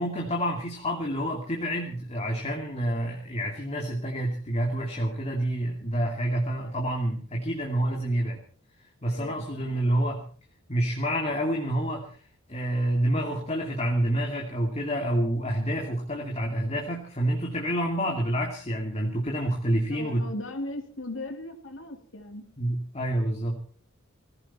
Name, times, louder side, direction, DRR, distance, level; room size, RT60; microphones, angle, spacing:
voice 1, 0.0-8.4 9.0-10.2 10.7-12.2 12.5-20.2 22.6-23.6, right 1 dB, 30° left, 0 dB, 2.7 m, -28 dB
voice 2, 9.0-9.9 19.9-22.4, left 2 dB, 65° left, 5 dB, 3.0 m, -38 dB
20.0 x 16.0 x 4.4 m, 0.42 s
head